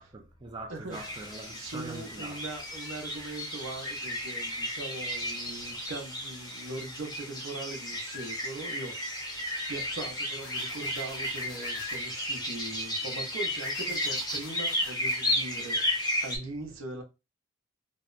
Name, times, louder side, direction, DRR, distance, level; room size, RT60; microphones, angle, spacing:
voice 1, 0.0-2.4, right 2 dB, 20° right, 0.3 m, -43 dB
voice 2, 0.7-1.0 1.5-9.0 9.7-15.8 16.2-17.0, right 2 dB, 75° right, 0.6 m, -40 dB
sound 1, 0.9-16.4, left 1 dB, 20° left, 0.6 m, -33 dB
sound 2, 10.4-12.0 13.6-15.2, left 4 dB, 80° left, 0.6 m, -48 dB
2.7 x 2.0 x 2.3 m
head